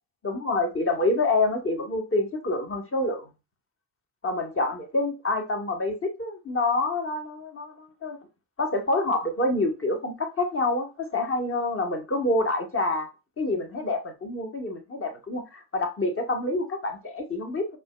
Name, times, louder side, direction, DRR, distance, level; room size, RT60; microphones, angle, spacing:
voice 1, 0.2-3.3 4.2-8.2 8.6-13.1 13.4-17.8, left 2 dB, 30° left, 1.2 m, -27 dB
5.0 x 2.5 x 2.2 m
supercardioid pair, 55°, 46 cm